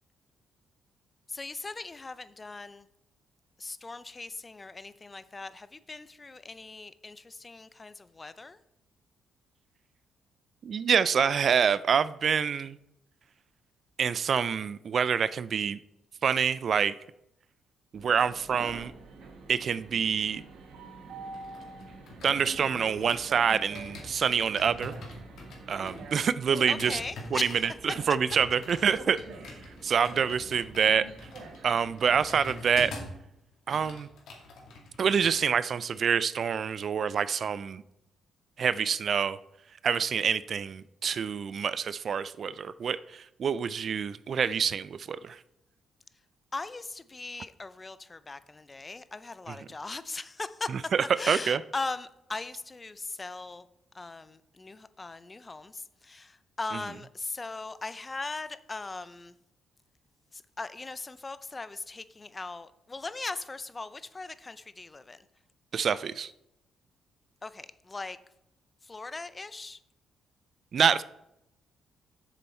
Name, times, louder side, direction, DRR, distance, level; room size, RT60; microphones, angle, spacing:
voice 1, 1.3-2.8 3.6-8.6 26.7-27.6 46.5-50.9 51.2-53.7 53.9-59.3 60.3-65.2 67.4-68.2 68.8-69.8, left 3 dB, 25° left, 14 dB, 0.5 m, -39 dB
voice 2, 10.6-12.8 14.0-15.8 16.2-16.9 17.9-18.9 19.5-20.4 22.2-24.9 25.7-27.0 27.3-29.2 29.8-31.1 31.6-32.9 33.7-34.1 35.0-37.8 38.6-39.4 39.8-45.4 49.5-49.6 50.9-51.6 65.7-66.3 70.7-71.0, right 7 dB, 50° right, 17 dB, 0.3 m, -26 dB
Train, 17.9-32.4, right 3 dB, 70° right, 1.4 m, -46 dB
sound 1, 21.1-23.4 23.7-33.2 33.5-35.3 35.6-35.9, left 2 dB, 70° left, 2.3 m, -45 dB
7.2 x 6.9 x 4.3 m, 0.83 s
cardioid pair, 90°, 0 cm